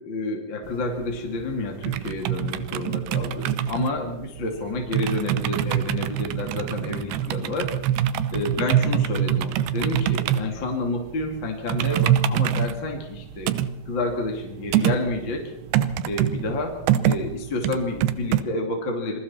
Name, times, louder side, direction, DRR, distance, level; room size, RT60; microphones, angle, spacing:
voice 1, 0.0-7.8 8.3-13.5 13.9-15.5 16.1-19.2, left 2 dB, 35° left, 2 dB, 2.7 m, -29 dB
sound 1, 0.6-18.4, right 10 dB, 90° right, 3.0 m, -25 dB
27.5 x 22.5 x 4.4 m, 0.86 s
omnidirectional pair, 4.5 m